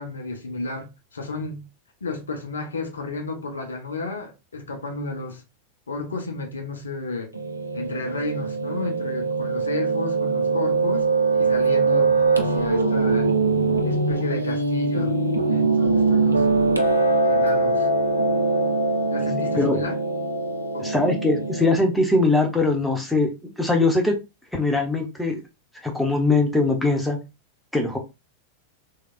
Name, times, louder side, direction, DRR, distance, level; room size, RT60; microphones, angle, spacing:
voice 1, 0.0-1.6 2.0-5.4 5.9-7.3 7.7-13.3 13.8-15.2 15.5-16.4 17.2-17.9 19.1-19.9 20.7-20.9, left 3 dB, 70° left, 0.8 m, -32 dB
Piano, 7.3-21.8, right 3 dB, 85° right, 0.5 m, -22 dB
voice 2, 20.8-23.3 23.6-24.2 24.5-25.4 25.8-27.2 27.7-28.0, left 2 dB, 5° left, 0.9 m, -21 dB
3.2 x 3.2 x 2.4 m
figure-of-eight pair, 90°, 0 cm